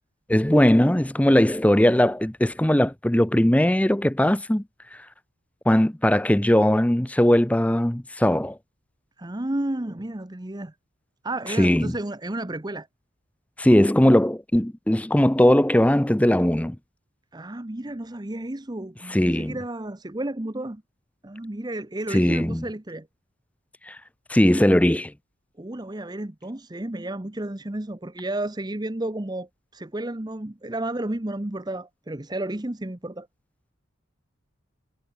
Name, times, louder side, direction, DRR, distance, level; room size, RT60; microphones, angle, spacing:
voice 1, 0.3-4.6 4.9-5.0 5.7-8.6 11.6-11.9 13.6-16.8 19.1-19.6 22.1-22.6 23.9-24.0 24.3-25.1, left 1 dB, 5° left, 0.6 m, -19 dB
voice 2, 9.2-10.7 11.2-12.9 17.3-20.8 21.2-23.1 25.6-33.3, right 1 dB, 20° right, 0.8 m, -32 dB
head